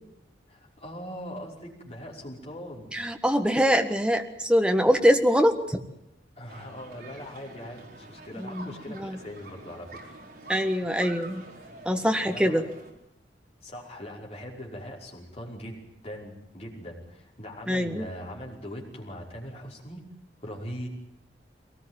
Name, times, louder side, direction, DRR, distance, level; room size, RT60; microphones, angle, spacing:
voice 1, 0.5-2.9 6.4-10.1 12.2-12.6 13.6-20.0 20.4-20.9, equal, 35° left, -2 dB, 5.5 m, -41 dB
voice 2, 2.9-5.8 8.3-8.7 8.9-9.2 10.5-11.4 11.8-12.6 17.7-18.1, equal, 5° right, 5 dB, 1.5 m, -23 dB
sound 1, 6.5-12.9, right 2 dB, 55° right, 4.6 m, -46 dB
22.0 x 19.0 x 9.2 m, 0.82 s
head